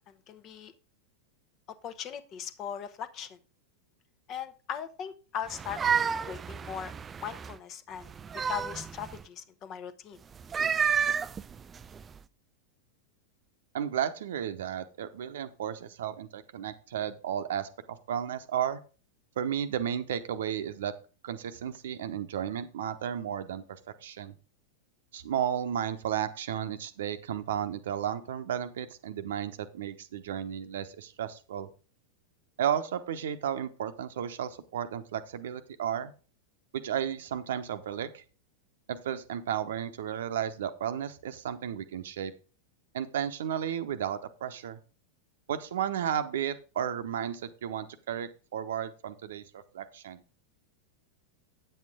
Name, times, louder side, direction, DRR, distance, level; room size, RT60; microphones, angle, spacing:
voice 1, 0.3-0.7 1.8-3.4 4.3-6.9 7.2-8.1 8.5-10.2, left 8 dB, 35° left, 11 dB, 0.9 m, -39 dB
sound 1, 5.5-7.5 8.0-9.2 10.3-12.2, right 7 dB, 20° right, 0.3 m, -31 dB
voice 2, 13.7-18.8 19.4-20.9 21.2-23.6 24.0-24.3 25.1-31.7 32.6-36.1 36.7-38.2 38.9-42.3 42.9-44.8 45.5-50.2, right 9 dB, 60° right, 10 dB, 0.9 m, -33 dB
9.1 x 7.9 x 3.7 m, 0.35 s
figure-of-eight pair, 90°, 0 cm